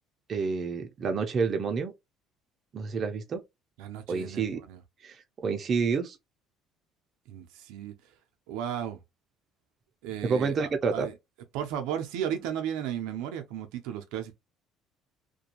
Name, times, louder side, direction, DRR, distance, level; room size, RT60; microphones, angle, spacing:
voice 1, 0.3-1.9 2.7-3.4 4.1-4.6 5.0-5.2 5.4-6.2 10.2-11.1, right 5 dB, 40° right, 0.6 m, -28 dB
voice 2, 3.8-4.8 7.3-7.9 8.5-9.0 10.0-11.1 11.5-14.3, right 9 dB, 85° right, 0.5 m, -35 dB
2.5 x 2.2 x 2.8 m
cardioid pair, 110°, 0 cm